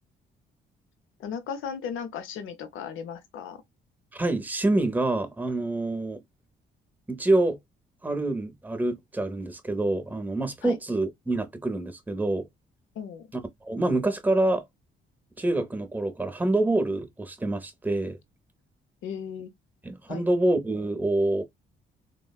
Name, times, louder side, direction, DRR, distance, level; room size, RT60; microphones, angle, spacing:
voice 1, 1.2-3.6 10.6-10.8 13.0-13.3 19.0-19.5 20.1-20.3, left 7 dB, 80° left, 0.6 m, -36 dB
voice 2, 4.1-6.2 7.1-7.6 8.0-12.5 13.6-14.6 15.4-18.2 19.8-21.4, right 2 dB, 10° right, 0.6 m, -26 dB
3.4 x 2.0 x 2.2 m
cardioid pair, 90°, 20 cm